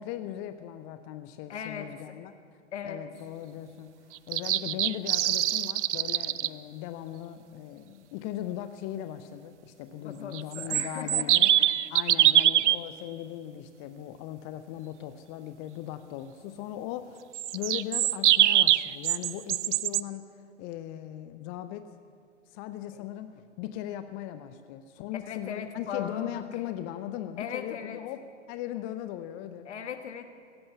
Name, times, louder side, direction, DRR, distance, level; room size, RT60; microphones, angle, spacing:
voice 1, 0.0-2.3 2.8-11.5 11.9-20.2 20.6-21.9 22.5-23.3 23.6-28.2 28.5-29.7, left 12 dB, 30° left, 10 dB, 0.5 m, -38 dB
voice 2, 1.5-1.9 2.7-3.1 10.0-11.8 22.9-23.1 25.2-26.4 27.4-28.0 29.6-30.3, left 7 dB, 65° left, 8 dB, 1.4 m, -38 dB
sound 1, 4.2-6.5 10.3-12.8 17.3-20.0, right 12 dB, 70° right, 0.5 m, -23 dB
17.0 x 7.8 x 8.0 m, 2.2 s
figure-of-eight pair, 105°, 37 cm